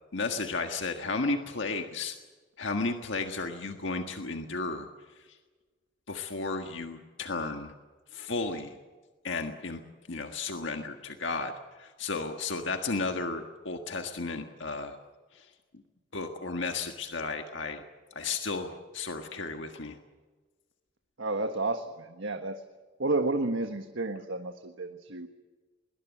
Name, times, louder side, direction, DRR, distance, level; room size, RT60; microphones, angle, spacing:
voice 1, 0.1-2.1 2.6-4.9 5.2-5.4 6.1-7.7 8.1-8.8 9.2-9.8 10.1-15.0 15.3-15.5 16.1-17.8 18.1-20.0, left 3 dB, 75° left, 5 dB, 1.6 m, -33 dB
voice 2, 21.2-22.6 23.0-25.3, right 2 dB, 80° right, 6 dB, 1.5 m, -31 dB
21.5 x 20.0 x 9.2 m, 1.3 s
head